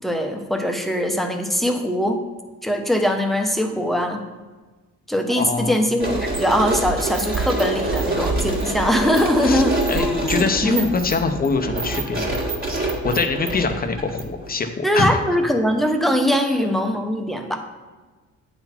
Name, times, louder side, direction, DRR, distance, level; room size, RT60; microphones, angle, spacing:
voice 1, 0.0-2.2 2.6-4.3 5.1-10.9 14.8-17.6, equal, ahead, 4 dB, 0.9 m, -21 dB
voice 2, 5.4-5.9 9.4-12.4 13.0-15.2, left 4 dB, 30° left, 6 dB, 0.8 m, -24 dB
sound 1, 6.0-14.5, right 2 dB, 30° right, 1.7 m, -26 dB
8.7 x 4.0 x 4.4 m, 1.3 s
cardioid pair, 90°, 30 cm